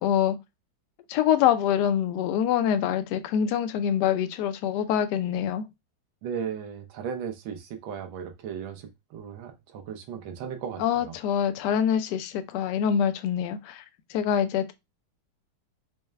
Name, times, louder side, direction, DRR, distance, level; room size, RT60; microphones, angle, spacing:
voice 1, 0.0-0.4 1.1-5.7 10.8-13.8 14.1-14.7, left 9 dB, 70° left, 1.0 m, -25 dB
voice 2, 6.2-11.0, right 7 dB, 80° right, 1.5 m, -36 dB
4.6 x 2.1 x 3.2 m
omnidirectional pair, 2.2 m